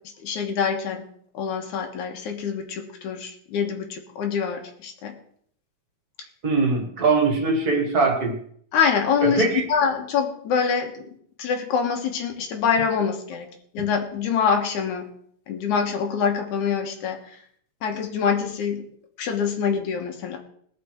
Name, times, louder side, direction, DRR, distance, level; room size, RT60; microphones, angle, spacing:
voice 1, 0.2-1.0 1.3-5.1 8.7-11.1 11.4-13.5 13.7-15.1 15.5-17.2 17.8-18.8 19.2-20.4, left 6 dB, 90° left, 2 dB, 2.8 m, -25 dB
voice 2, 6.4-8.4 9.2-9.6, right 3 dB, 35° right, 4 dB, 1.9 m, -21 dB
20.5 x 6.9 x 4.6 m, 0.63 s
omnidirectional pair, 3.3 m